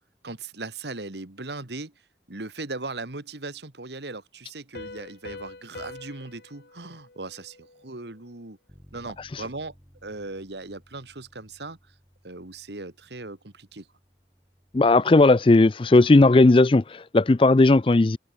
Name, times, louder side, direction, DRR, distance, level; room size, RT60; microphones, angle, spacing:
voice 1, 0.2-1.9 2.3-8.6 8.9-9.7 10.0-11.8 12.2-13.9, right 3 dB, 75° right, 1.9 m, -38 dB
Piano, 4.7-8.2, left 3 dB, 60° left, 1.1 m, -44 dB
Bass guitar, 8.7-14.9, equal, 10° right, 6.9 m, -57 dB
voice 2, 14.7-18.2, left 2 dB, 30° left, 0.4 m, -17 dB
head